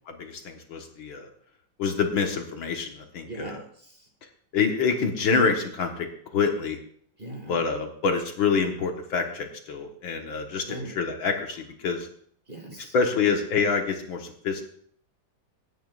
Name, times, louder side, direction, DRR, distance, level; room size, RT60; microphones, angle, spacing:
voice 1, 0.2-1.3 1.8-3.6 4.5-6.1 6.3-6.8 7.5-12.1 12.9-14.6, left 5 dB, 70° left, 3 dB, 2.2 m, -26 dB
voice 2, 3.3-4.1 7.2-7.6 10.7-11.0 12.5-12.9, right 1 dB, 25° right, 2 dB, 2.3 m, -40 dB
25.5 x 9.4 x 2.5 m, 0.62 s
omnidirectional pair, 2.2 m